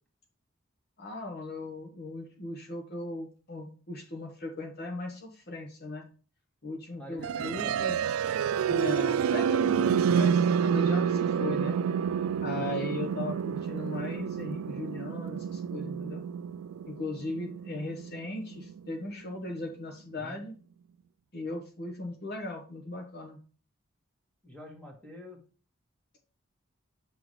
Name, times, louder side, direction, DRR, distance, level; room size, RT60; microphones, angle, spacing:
voice 1, 1.0-6.1 6.6-8.0 8.7-11.8 12.4-16.2 16.9-20.6 21.3-23.4, left 2 dB, 50° left, 2 dB, 1.2 m, -38 dB
voice 2, 7.0-7.8 12.5-12.8 20.1-20.4 24.4-25.4, equal, 5° left, 0 dB, 1.9 m, -46 dB
sound 1, 7.2-19.1, right 7 dB, 85° right, 0.3 m, -29 dB
6.9 x 6.2 x 3.2 m, 0.38 s
head